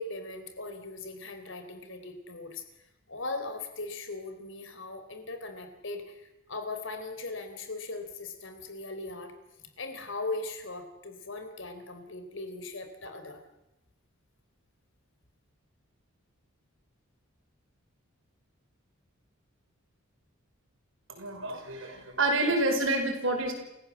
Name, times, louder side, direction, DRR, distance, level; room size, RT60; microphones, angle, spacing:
voice 1, 0.0-2.6 3.1-9.3 9.6-13.4, left 3 dB, 60° left, 7 dB, 3.8 m, -39 dB
voice 2, 21.1-23.5, right 2 dB, 65° right, 4 dB, 5.6 m, -28 dB
28.5 x 16.5 x 7.4 m, 0.93 s
head